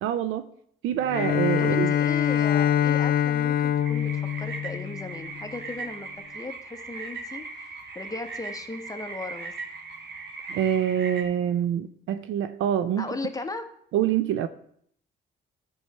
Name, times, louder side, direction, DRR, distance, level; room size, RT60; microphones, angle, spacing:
voice 1, 0.0-0.5 0.8-1.9 10.5-13.0 13.9-14.5, right 10 dB, 85° right, 11 dB, 0.6 m, -25 dB
Bowed string instrument, 1.1-5.5, left 10 dB, 50° left, 0.5 m, -24 dB
voice 2, 1.5-6.1 6.3-7.4 7.9-9.5 13.0-13.7, left 3 dB, 15° left, 6 dB, 1.2 m, -36 dB
sound 1, 3.8-11.2, right 3 dB, 60° right, 1.8 m, -39 dB
12.0 x 4.8 x 5.5 m, 0.65 s
cardioid pair, 90°, 20 cm